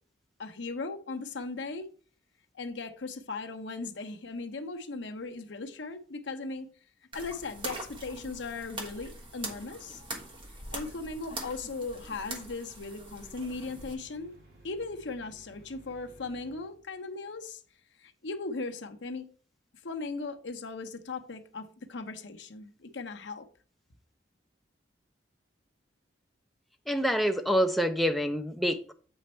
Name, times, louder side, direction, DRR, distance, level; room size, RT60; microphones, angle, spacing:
voice 1, 0.4-1.9 2.5-6.7 7.1-10.0 10.7-14.3 14.6-17.6 18.0-19.3 19.8-23.5, left 3 dB, 70° left, 0.8 m, -38 dB
sound 1, 7.1-13.9, right 2 dB, 25° right, 1.3 m, -42 dB
sound 2, 13.1-16.7, equal, 55° right, 2.4 m, -56 dB
voice 2, 26.9-28.9, equal, ahead, 0.4 m, -27 dB
8.0 x 4.3 x 4.3 m
head